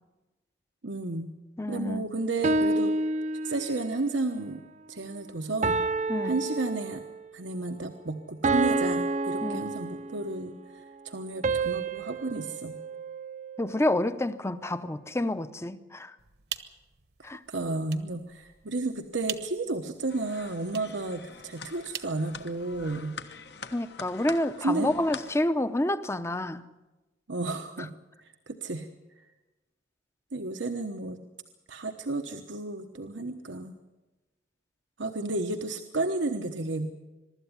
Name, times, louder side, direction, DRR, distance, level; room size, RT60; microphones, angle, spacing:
voice 1, 0.8-1.3 1.7-2.9 3.4-4.6 4.9-5.8 6.2-7.0 7.3-10.6 11.0-12.7 17.5-23.2 24.6-24.9 27.3-27.9 28.5-28.9 30.3-31.2 31.7-33.8 35.0-36.9, right 2 dB, 85° right, 1.1 m, -32 dB
voice 2, 1.6-2.1 6.1-6.4 9.4-9.7 13.6-16.1 17.2-17.4 23.7-26.6, left 1 dB, 15° left, 0.7 m, -28 dB
sound 1, 2.4-4.0 5.6-7.3 8.4-10.4 11.4-13.8, right 3 dB, 40° right, 0.6 m, -29 dB
sound 2, 16.2-23.0, right 9 dB, 60° right, 1.1 m, -44 dB
sound 3, 20.1-25.4, left 5 dB, 65° left, 1.3 m, -44 dB
23.5 x 13.0 x 9.7 m
head